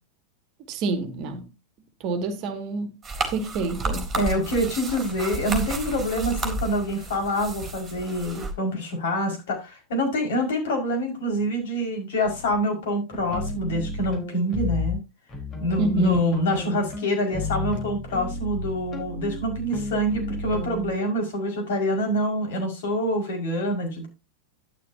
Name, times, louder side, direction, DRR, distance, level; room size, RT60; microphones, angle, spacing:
voice 1, 0.7-1.5 2.0-2.9 3.3-4.1 15.8-16.2, right 3 dB, 40° right, 2.2 m, -27 dB
sound 1, 3.0-8.5, right 3 dB, 20° right, 3.7 m, -32 dB
voice 2, 4.1-15.0 15.6-24.1, equal, 55° left, 5.5 m, -26 dB
sound 2, 12.2-12.6 13.1-15.0 15.3-20.9, left 3 dB, 25° left, 4.2 m, -32 dB
12.0 x 10.5 x 2.8 m
figure-of-eight pair, 90°, 0 cm